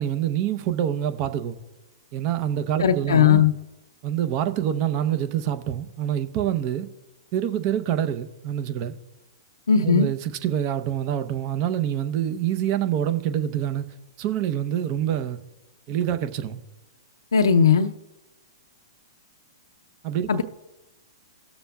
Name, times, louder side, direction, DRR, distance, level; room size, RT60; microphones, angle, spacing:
voice 1, 0.0-1.6 2.1-3.4 4.0-6.9 7.3-8.9 9.8-15.4 15.9-16.6 20.0-20.4, right 10 dB, 40° right, 0.7 m, -26 dB
voice 2, 2.8-3.5 9.7-10.1 17.3-17.9 20.3-20.4, left 7 dB, 85° left, 0.5 m, -18 dB
17.5 x 7.0 x 2.3 m
hypercardioid pair, 120°, 2 cm